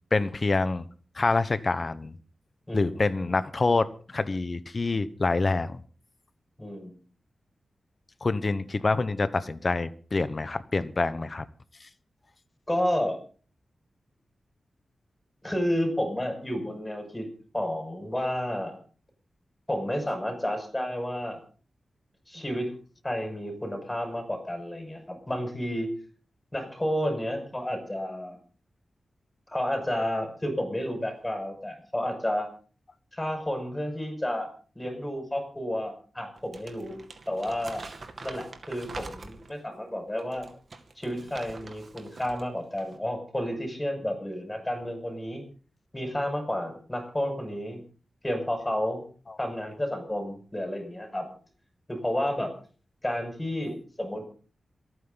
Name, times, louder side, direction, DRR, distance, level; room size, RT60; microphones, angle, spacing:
voice 1, 0.1-0.8 1.1-2.1 2.7-5.8 8.2-11.4 11.8-11.9, left 3 dB, 40° left, 14 dB, 1.1 m, -26 dB
voice 2, 2.7-3.0 6.6-7.0 12.7-13.2 15.4-17.3 17.5-18.8 19.7-21.4 22.3-22.7 23.0-25.9 26.5-28.4 29.5-32.5 33.1-34.5 34.7-37.0 37.3-37.9 38.2-40.5 41.0-45.4 45.9-47.8 48.2-49.0 49.4-51.3 51.9-52.5 53.0-54.2, equal, 15° left, 5 dB, 6.0 m, -31 dB
Crumpling crinkling, 36.4-39.6 40.2-42.4 42.7-43.0, right 3 dB, 55° right, 2.2 m, -44 dB
28.0 x 9.4 x 4.0 m, 0.40 s
wide cardioid pair, 85°, 0 cm